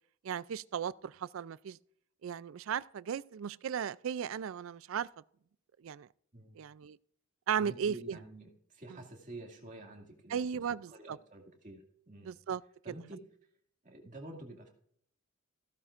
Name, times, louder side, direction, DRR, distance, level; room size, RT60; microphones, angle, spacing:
voice 1, 0.2-1.8 2.2-5.1 5.8-6.1 6.6-7.0 7.5-8.2 8.9-9.0 10.3-11.2 12.2-12.6, right 7 dB, 65° right, 0.4 m, -36 dB
voice 2, 7.6-10.4 10.9-12.4 12.8-13.2 13.8-14.7, right 1 dB, 35° right, 2.2 m, -49 dB
15.0 x 13.0 x 2.5 m
head